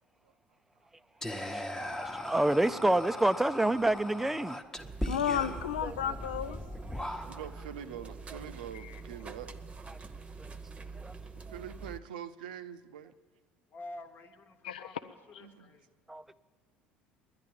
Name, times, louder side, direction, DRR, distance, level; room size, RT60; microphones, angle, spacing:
Whispering, 1.2-7.7, left 1 dB, 10° left, 0.9 m, -39 dB
voice 1, 1.6-4.6 6.9-7.3 11.0-11.1 16.1-16.3, right 1 dB, 5° right, 0.4 m, -28 dB
sound 1, 4.8-12.0, right 4 dB, 25° right, 0.9 m, -45 dB
voice 2, 5.0-6.6 8.7-8.9 14.6-14.8, left 9 dB, 90° left, 0.3 m, -32 dB
voice 3, 7.3-9.5 11.2-13.1 15.4-15.8, right 9 dB, 85° right, 0.5 m, -44 dB
voice 4, 13.7-15.9, left 2 dB, 45° left, 1.1 m, -49 dB
10.5 x 10.5 x 9.4 m
hypercardioid pair, 70°, 5 cm